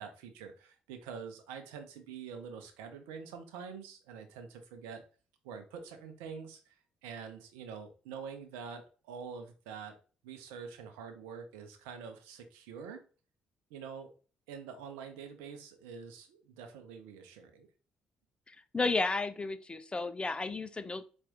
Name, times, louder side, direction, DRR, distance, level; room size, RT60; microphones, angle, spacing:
voice 1, 0.0-5.0 5.4-6.8 7.0-10.0 10.2-13.0 13.7-14.1 14.5-17.7, right 6 dB, 75° right, 6 dB, 0.7 m, -46 dB
voice 2, 18.7-21.0, left 3 dB, 25° left, 10 dB, 0.6 m, -32 dB
4.3 x 2.5 x 3.6 m, 0.36 s
hypercardioid pair, 45°, 4 cm